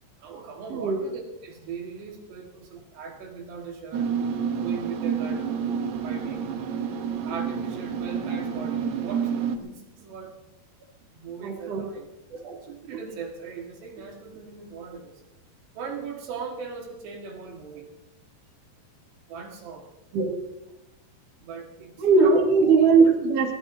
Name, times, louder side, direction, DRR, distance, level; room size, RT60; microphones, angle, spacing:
voice 1, 0.2-4.1 4.6-5.6 6.0-6.5 7.2-10.3 11.1-12.1 12.4-15.2 15.8-17.9 19.3-19.9 21.4-22.4, right 5 dB, 70° right, 1 dB, 3.8 m, -39 dB
sound 1, 3.9-9.6, right 7 dB, 90° right, 1.6 m, -29 dB
voice 2, 11.4-11.9 12.4-12.6 20.1-20.3 22.0-23.5, right 4 dB, 55° right, 1 dB, 3.1 m, -19 dB
23.0 x 17.0 x 2.7 m, 0.91 s
omnidirectional pair, 5.2 m